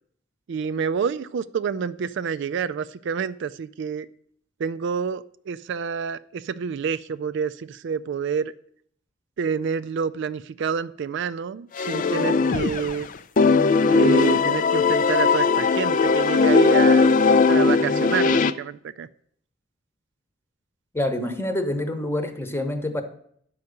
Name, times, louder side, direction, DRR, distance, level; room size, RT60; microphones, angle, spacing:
voice 1, 0.5-4.1 4.6-8.5 9.4-13.1 13.9-17.2 17.5-19.1, right 6 dB, 65° right, 0.4 m, -28 dB
sound 1, 11.8-13.0 13.4-18.5, left 4 dB, 45° left, 0.4 m, -19 dB
voice 2, 20.9-23.0, left 1 dB, 10° left, 0.9 m, -26 dB
10.5 x 4.7 x 6.6 m
head